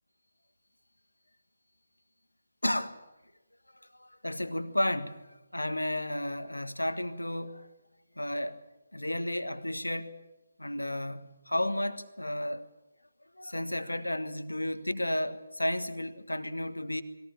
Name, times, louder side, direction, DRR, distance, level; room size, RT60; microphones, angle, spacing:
voice 1, 2.6-3.0 3.7-7.7 8.2-8.6 8.9-10.2 10.6-12.7 13.3-17.0, left 1 dB, 80° left, 1.5 m, -33 dB
20.5 x 17.5 x 8.8 m
figure-of-eight pair, 145°, 0 cm